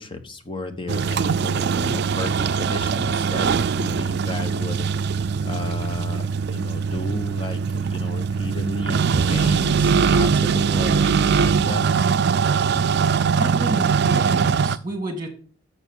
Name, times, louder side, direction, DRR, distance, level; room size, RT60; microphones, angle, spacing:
voice 1, 0.0-4.9 5.1-11.8, left 2 dB, 25° left, 8 dB, 0.9 m, -33 dB
sound 1, 0.9-14.8, right 6 dB, 60° right, 0.4 m, -21 dB
voice 2, 13.3-15.3, right 1 dB, 20° right, 4 dB, 1.8 m, -30 dB
7.1 x 6.5 x 6.3 m, 0.40 s
head